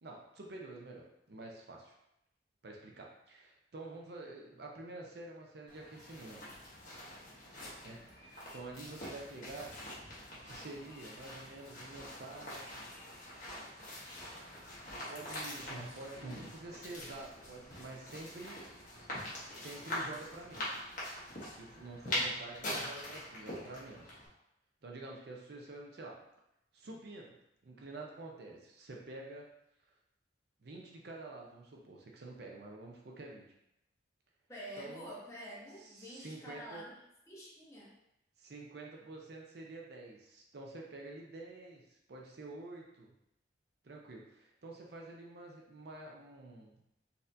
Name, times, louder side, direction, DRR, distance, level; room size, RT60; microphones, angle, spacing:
voice 1, 0.0-1.9 2.6-6.5 7.8-9.7 10.4-12.9 15.1-18.6 19.5-21.0 21.4-24.2 24.8-26.2 26.7-27.4 27.6-29.5 30.6-33.5 34.8-35.1 35.8-36.9 38.4-43.1 43.8-46.7, right 2 dB, 55° right, -1 dB, 0.5 m, -48 dB
sound 1, 5.7-24.3, left 1 dB, 45° left, 1.0 m, -44 dB
Clock, 15.6-23.0, right 2 dB, 85° right, 0.8 m, -53 dB
voice 2, 34.5-36.9 37.3-37.9, equal, 15° left, -6 dB, 0.9 m, -48 dB
4.1 x 2.7 x 2.6 m, 0.84 s
head